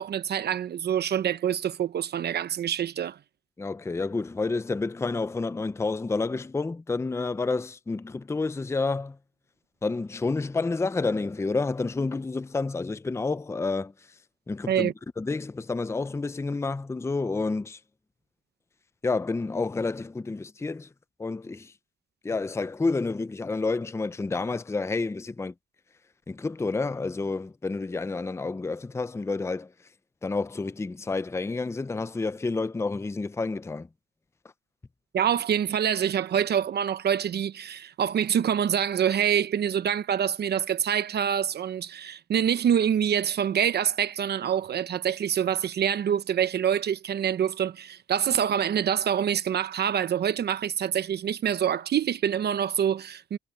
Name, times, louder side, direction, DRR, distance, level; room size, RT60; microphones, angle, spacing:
voice 1, 0.0-3.2 14.7-14.9 35.1-53.4, right 9 dB, 55° right, 0.8 m, -26 dB
voice 2, 3.6-9.2 9.8-13.9 14.5-17.8 19.0-20.9 21.2-21.7 22.2-25.5 26.3-29.7 30.2-33.9, left 3 dB, 15° left, 0.6 m, -29 dB
cardioid pair, 90°, 20 cm